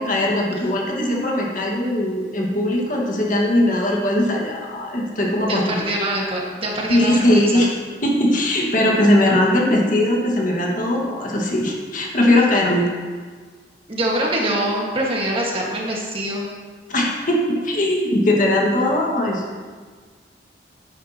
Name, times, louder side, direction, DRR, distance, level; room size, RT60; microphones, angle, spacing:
voice 1, 0.0-5.9 6.9-7.7 8.0-12.9 16.9-19.4, left 1 dB, 50° left, -2 dB, 1.6 m, -19 dB
voice 2, 5.5-7.6 13.9-16.5, right 1 dB, 30° right, -3 dB, 1.6 m, -24 dB
11.5 x 9.9 x 2.9 m, 1.5 s
head